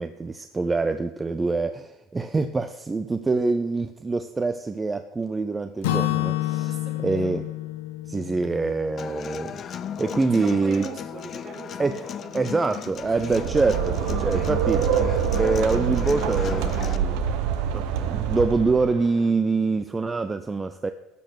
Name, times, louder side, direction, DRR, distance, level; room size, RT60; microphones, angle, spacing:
voice 1, 0.0-6.7 7.0-7.4 8.1-10.9 11.8-12.0 12.3-14.9 15.4-17.3 17.7-20.9, right 3 dB, 15° right, 10 dB, 0.5 m, -25 dB
Acoustic guitar / Strum, 5.8-9.8, left 15 dB, 85° left, 1.0 m, -29 dB
voice 2, 6.6-7.4 10.2-12.8 13.0-13.5, right 2 dB, 40° right, -1 dB, 3.9 m, -40 dB
Human voice / Acoustic guitar, 9.0-17.0, left 8 dB, 40° left, 0.5 m, -36 dB
sound 1, 13.0-19.1, right 8 dB, 70° right, 1.1 m, -25 dB
12.0 x 6.5 x 6.5 m, 0.99 s
supercardioid pair, 115°, 0 cm